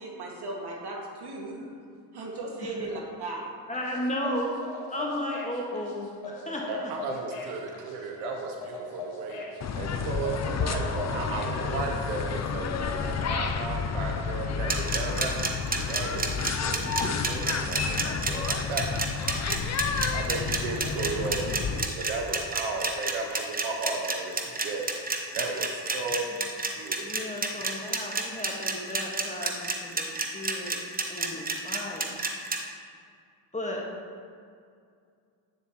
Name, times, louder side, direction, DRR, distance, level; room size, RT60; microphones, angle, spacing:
voice 1, 0.0-1.7 2.1-3.4, right 2 dB, 55° right, -1 dB, 2.0 m, -36 dB
voice 2, 2.6-2.9 3.7-4.6 4.9-6.9 27.0-30.8 31.1-32.1 33.5-33.9, left 1 dB, 15° left, -2 dB, 1.6 m, -34 dB
sound 1, 3.7-11.6, left 2 dB, 70° left, 1.6 m, -40 dB
voice 3, 6.7-9.4 9.7-15.4 15.9-18.9 19.2-19.6 20.1-24.8 25.3-27.3, right 3 dB, 85° right, 2 dB, 0.9 m, -35 dB
sound 2, 9.6-21.8, left 6 dB, 35° left, 0.5 m, -31 dB
sound 3, 14.7-32.6, right 3 dB, 20° right, 0.9 m, -29 dB
9.1 x 7.0 x 3.0 m, 2.3 s
supercardioid pair, 60°, 48 cm